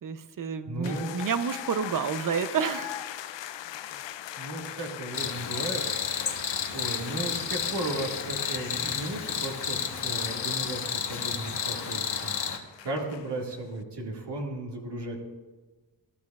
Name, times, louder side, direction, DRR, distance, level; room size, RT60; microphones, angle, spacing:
voice 1, 0.0-3.0, right 6 dB, 50° right, 12 dB, 0.7 m, -30 dB
voice 2, 0.7-1.1 4.4-15.2, right 1 dB, 70° right, -1 dB, 2.0 m, -35 dB
sound 1, 0.8-13.5, left 12 dB, 85° left, 0.6 m, -41 dB
Cricket, 5.1-12.6, left 7 dB, 65° left, 1.3 m, -32 dB
19.0 x 12.0 x 2.4 m, 1.3 s
wide cardioid pair, 95°, 43 cm